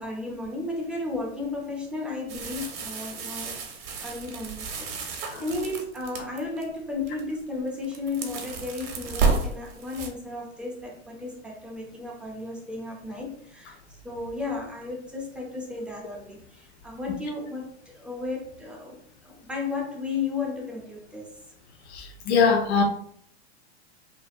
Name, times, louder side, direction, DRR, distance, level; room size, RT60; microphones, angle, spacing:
voice 1, 0.0-3.5 4.0-21.3, left 3 dB, 5° right, -2 dB, 0.4 m, -34 dB
sound 1, 2.3-6.6 7.1-7.4 7.7-10.1, right 4 dB, 40° right, 0.6 m, -31 dB
voice 2, 21.9-22.8, left 5 dB, 70° left, 3 dB, 0.5 m, -22 dB
2.5 x 2.2 x 2.5 m, 0.65 s
hypercardioid pair, 110°, 34 cm